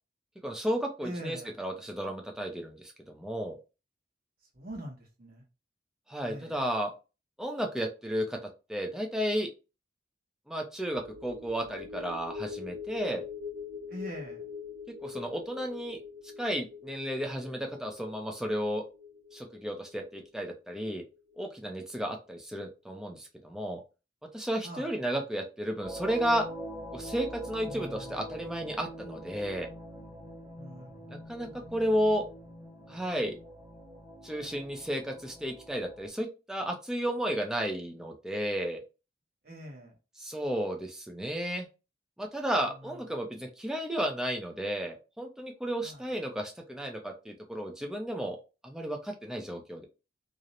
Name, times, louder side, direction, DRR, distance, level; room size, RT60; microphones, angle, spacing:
voice 1, 0.4-3.6 6.1-6.9 7.4-9.5 10.5-13.2 15.0-16.0 16.4-18.9 19.3-21.0 21.4-23.8 24.3-26.5 26.9-29.7 31.1-32.3 32.9-33.4 34.2-38.8 40.2-41.7 42.2-49.9, equal, 5° right, 1 dB, 0.4 m, -33 dB
voice 2, 1.0-1.6 4.5-5.4 6.2-6.6 13.9-14.4 24.6-24.9 27.7-28.2 30.6-31.1 31.4-31.7 39.4-39.9 42.8-43.0 45.8-46.1, equal, 55° right, -1 dB, 1.0 m, -43 dB
sound 1, 10.9-21.6 21.9-22.0, left 6 dB, 75° right, 0.6 m, -44 dB
sound 2, 25.8-36.1, equal, 20° right, 0.9 m, -44 dB
2.4 x 2.0 x 2.8 m, 0.30 s
head